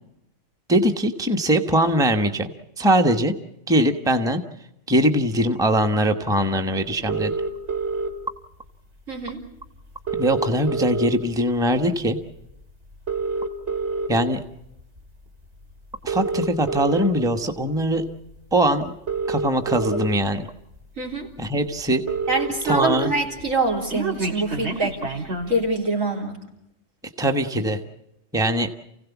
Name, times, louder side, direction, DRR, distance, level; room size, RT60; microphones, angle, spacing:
voice 1, 0.7-2.5 2.8-3.3 3.7-4.4 4.9-7.3 10.2-12.2 14.1-14.4 16.0-18.1 18.5-18.9 19.3-20.5 21.4-22.0 22.6-23.1 27.2-27.8 28.3-28.7, right 1 dB, 5° right, 6 dB, 1.1 m, -21 dB
sound 1, 7.1-8.1 9.3-9.4 9.6-9.7 9.9-11.4 11.8-12.1 12.9-14.1 14.8-15.0 15.9-17.1 18.3-18.4 18.9-20.1 20.8-20.9 21.2-21.3 21.5-21.6 21.8-23.1 23.4-25.6, right 4 dB, 60° right, 2.4 m, -27 dB
voice 2, 9.1-9.4 21.0-21.3 22.3-26.4, right 2 dB, 80° right, 0 dB, 4.1 m, -25 dB
29.5 x 16.5 x 7.2 m, 0.83 s
omnidirectional pair, 1.3 m